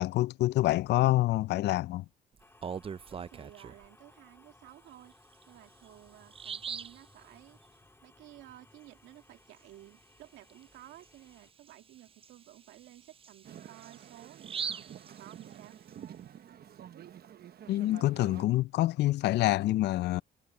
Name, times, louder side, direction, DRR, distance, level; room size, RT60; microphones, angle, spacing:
voice 1, 0.0-2.0 17.7-20.2, left 16 dB, 65° left, 0.4 m, -26 dB
sound 1, 2.4-11.5, left 2 dB, 15° left, 3.9 m, -61 dB
Bird vocalization bird call bird song, 2.4-3.9 5.3-5.4 5.9-6.0 6.3-7.0 10.5-10.6 11.0-11.1 11.7-15.9, right 7 dB, 30° right, 0.4 m, -41 dB
voice 2, 3.1-5.1 5.5-7.6 8.0-14.9 15.2-15.8, right 15 dB, 80° right, 2.2 m, -54 dB
sound 2, 13.4-18.4, right 9 dB, 55° right, 1.0 m, -49 dB
supercardioid pair, 65°, 19 cm